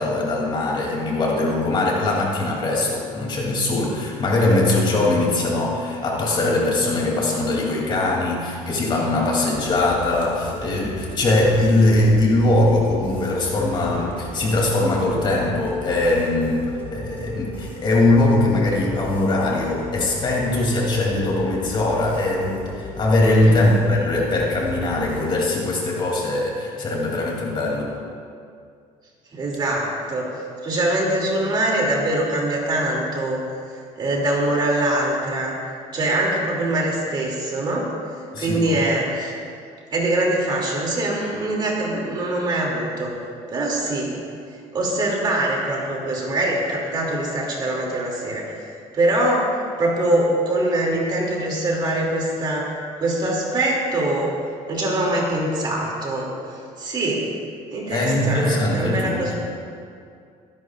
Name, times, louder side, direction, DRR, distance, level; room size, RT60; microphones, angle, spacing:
voice 1, 0.0-16.6 16.9-27.9 38.3-38.7 57.9-59.3, left 2 dB, 35° left, -2 dB, 3.0 m, -21 dB
sound 1, 9.5-25.5, left 1 dB, 15° left, 3.9 m, -36 dB
voice 2, 29.3-33.4 34.0-35.5 35.9-37.9 38.4-39.3 39.9-43.1 43.5-44.1 44.7-48.4 48.9-49.5 49.8-52.7 53.0-54.3 54.7-57.3 57.7-59.3, right 1 dB, 35° right, -3 dB, 2.8 m, -23 dB
25.0 x 11.0 x 2.5 m, 2.3 s
cardioid pair, 145°, 13 cm